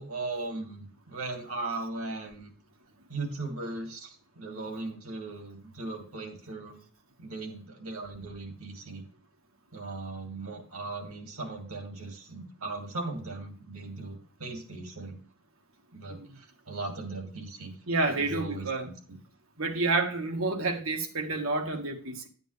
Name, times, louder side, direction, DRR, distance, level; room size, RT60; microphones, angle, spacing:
voice 1, 0.0-2.5 3.1-6.8 7.2-9.0 9.7-15.2 15.9-17.7 18.1-18.9, right 3 dB, 85° right, 2.6 m, -38 dB
voice 2, 17.9-18.9 19.6-22.3, right 3 dB, 70° right, 1.7 m, -29 dB
9.7 x 9.4 x 3.4 m
head